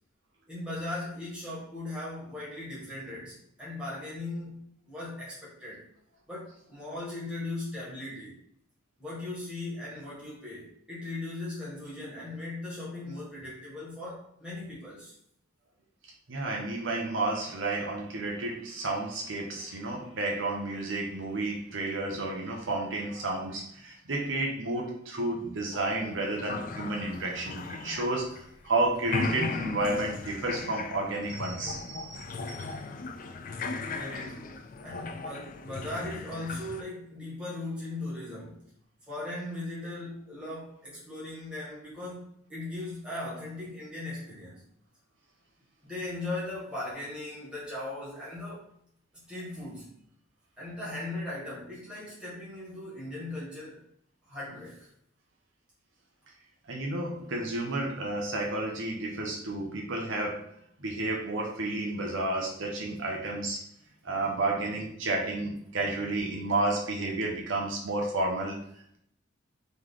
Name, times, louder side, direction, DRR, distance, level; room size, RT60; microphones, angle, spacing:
voice 1, 0.5-5.8 6.3-8.4 9.0-15.1 33.8-38.7 39.1-44.6 45.8-48.7 49.3-49.9 50.6-53.8 54.3-54.9, left 2 dB, 5° right, -8 dB, 1.8 m, -38 dB
voice 2, 16.3-32.7 56.7-63.6 64.0-69.0, right 2 dB, 70° right, -1 dB, 0.9 m, -31 dB
sound 1, 25.7-28.7 28.9-36.8, left 4 dB, 40° left, 0.4 m, -37 dB
4.0 x 3.2 x 3.6 m, 0.68 s
head